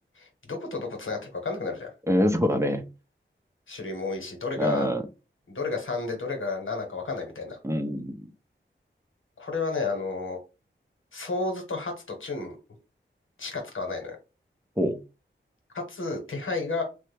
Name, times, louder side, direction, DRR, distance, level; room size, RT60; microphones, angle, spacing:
voice 1, 0.2-1.9 3.7-4.9 5.5-7.6 9.4-10.4 11.1-11.9 12.2-12.6 13.4-14.2 15.7-16.8, left 3 dB, 80° left, 3 dB, 1.0 m, -31 dB
voice 2, 2.1-2.9 4.6-5.1 7.6-8.3 14.8-15.0, equal, 15° right, 6 dB, 0.6 m, -25 dB
3.3 x 2.1 x 3.3 m, 0.29 s
wide cardioid pair, 50°, 20 cm